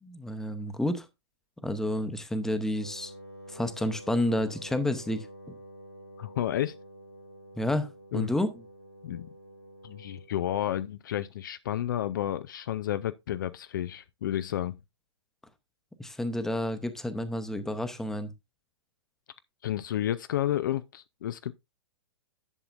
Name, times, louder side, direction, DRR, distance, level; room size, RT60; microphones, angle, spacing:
voice 1, 0.0-1.1 1.6-3.1 3.5-5.6 7.6-8.6 16.0-18.3, left 1 dB, 5° left, 0.8 m, -30 dB
Wind instrument woodwind instrument, 2.7-10.4, right 1 dB, 75° left, 4.3 m, -48 dB
voice 2, 6.2-6.8 8.1-8.3 9.0-9.3 9.8-14.8 19.6-21.5, left 12 dB, 50° left, 0.4 m, -31 dB
10.5 x 6.9 x 2.5 m
figure-of-eight pair, 110°, 14 cm